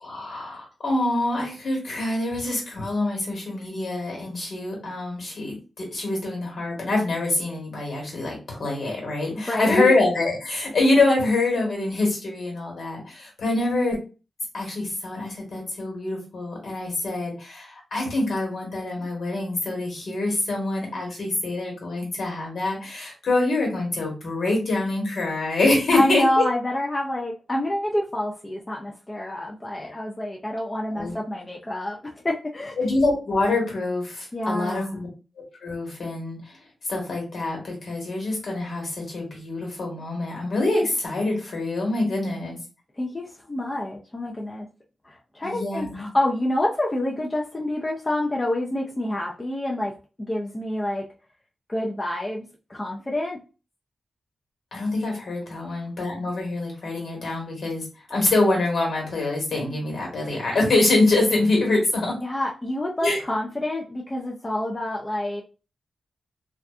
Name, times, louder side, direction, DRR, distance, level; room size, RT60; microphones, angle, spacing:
voice 1, 0.0-14.0 14.5-26.4 30.9-31.1 32.8-35.1 35.6-36.4 36.9-42.6 45.4-46.1 54.7-57.8 58.1-62.2 63.0-63.2, left 2 dB, 65° left, 0 dB, 1.2 m, -25 dB
voice 2, 9.4-10.0 25.9-32.0 32.2-32.8 34.3-35.0 43.0-44.7 45.0-49.9 50.3-51.0 51.7-53.4 55.6-55.7 62.2-65.4, left 1 dB, 20° left, -1 dB, 0.4 m, -27 dB
2.6 x 2.2 x 2.3 m, 0.33 s
wide cardioid pair, 145°, 0 cm